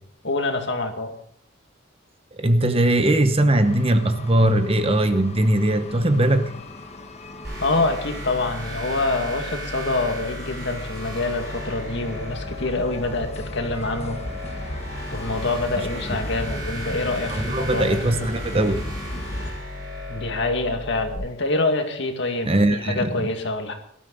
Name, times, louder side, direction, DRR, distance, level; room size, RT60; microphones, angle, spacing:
voice 1, 0.2-1.1 7.6-14.2 15.1-18.0 20.1-23.7, left 2 dB, 60° left, 4 dB, 2.2 m, -26 dB
voice 2, 2.4-6.5 17.3-18.9 22.5-23.3, right 1 dB, 30° right, 9 dB, 1.0 m, -20 dB
sound 1, 3.6-19.5, left 1 dB, 30° left, 1.4 m, -36 dB
sound 2, 7.4-21.2, left 1 dB, 50° right, 7.1 m, -35 dB
18.5 x 12.5 x 4.0 m, 0.63 s
head